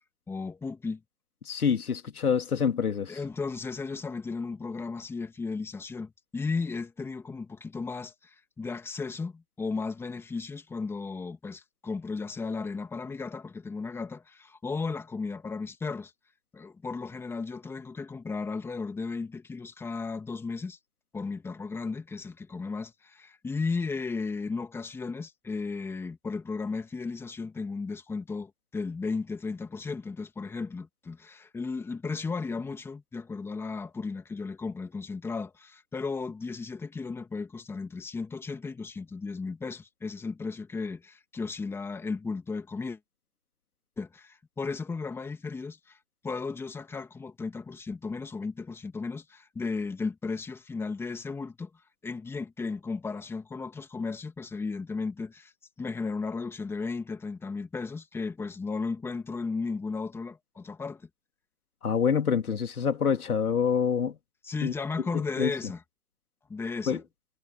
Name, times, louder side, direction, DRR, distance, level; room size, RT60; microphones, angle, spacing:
voice 1, 0.3-1.0 3.1-16.1 16.5-20.8 21.1-43.0 44.0-46.0 46.2-51.7 52.0-55.5 55.8-61.0 64.4-65.8 66.5-67.0, left 4 dB, 5° left, 2.7 m, -35 dB
voice 2, 1.4-3.2 61.8-64.2 64.6-64.7 65.1-65.5 66.9-67.0, left 7 dB, 75° left, 2.9 m, -26 dB
hypercardioid pair, 145°, 45 cm